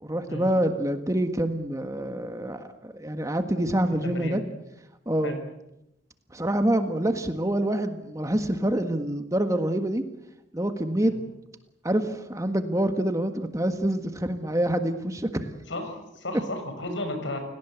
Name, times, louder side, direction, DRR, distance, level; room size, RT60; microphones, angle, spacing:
voice 1, 0.0-4.4 5.0-5.3 6.3-10.0 10.5-11.2 11.8-15.5, right 1 dB, 15° right, 8 dB, 1.6 m, -26 dB
voice 2, 3.9-4.5 5.2-5.4 11.0-11.2 15.7-17.4, left 1 dB, 75° left, 6 dB, 6.6 m, -34 dB
30.0 x 18.0 x 8.2 m, 0.87 s
head